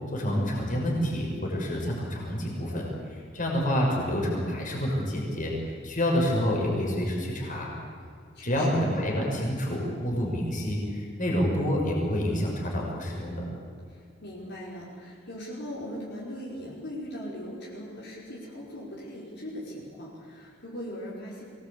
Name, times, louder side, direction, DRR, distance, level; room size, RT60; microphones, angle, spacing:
voice 1, 0.1-7.7 8.4-13.4, equal, 40° left, -2 dB, 6.0 m, -28 dB
voice 2, 8.3-8.8 13.9-21.4, equal, 55° left, -6 dB, 5.3 m, -39 dB
24.0 x 19.5 x 8.6 m, 2.2 s
head